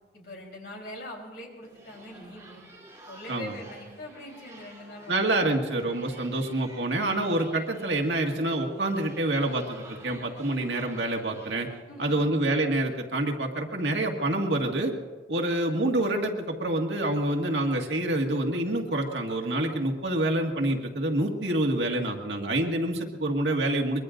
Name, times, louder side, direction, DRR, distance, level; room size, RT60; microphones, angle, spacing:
voice 1, 0.1-2.6 3.1-5.2 11.9-12.4, left 1 dB, 60° left, -1 dB, 3.8 m, -42 dB
sound 1, 1.6-11.8, right 2 dB, 20° right, 2.9 m, -51 dB
voice 2, 5.1-11.7 12.0-14.9 15.3-24.0, right 1 dB, 90° right, 2 dB, 1.8 m, -27 dB
24.0 x 22.0 x 2.6 m, 1.4 s
head